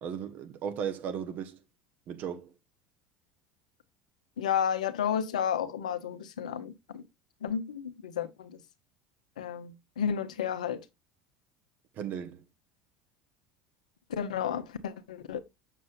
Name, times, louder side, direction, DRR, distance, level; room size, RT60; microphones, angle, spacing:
voice 1, 0.0-1.6 2.1-2.5 12.0-12.4, right 8 dB, 50° right, 1.2 m, -36 dB
voice 2, 4.4-7.0 7.4-8.6 9.4-10.8 14.1-15.4, left 8 dB, 85° left, 0.8 m, -32 dB
6.8 x 6.4 x 2.5 m
hypercardioid pair, 75°, 4 cm